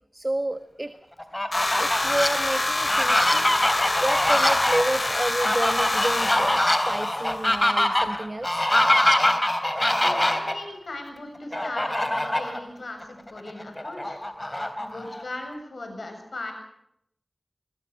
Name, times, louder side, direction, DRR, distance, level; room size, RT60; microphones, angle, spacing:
voice 1, 0.1-0.9 1.8-3.6 4.0-8.6, right 1 dB, 35° right, 10 dB, 1.4 m, -30 dB
Fowl, 1.2-2.3 2.8-10.5 11.5-12.6 13.0-13.1 13.5-15.2, left 1 dB, 20° left, 3.4 m, -23 dB
sound 1, 1.5-7.7, left 2 dB, 40° left, 3.5 m, -27 dB
voice 2, 9.9-14.2 14.8-16.5, left 2 dB, 80° left, 5 dB, 7.2 m, -38 dB
23.0 x 21.5 x 6.5 m, 0.75 s
wide cardioid pair, 55°, 0 cm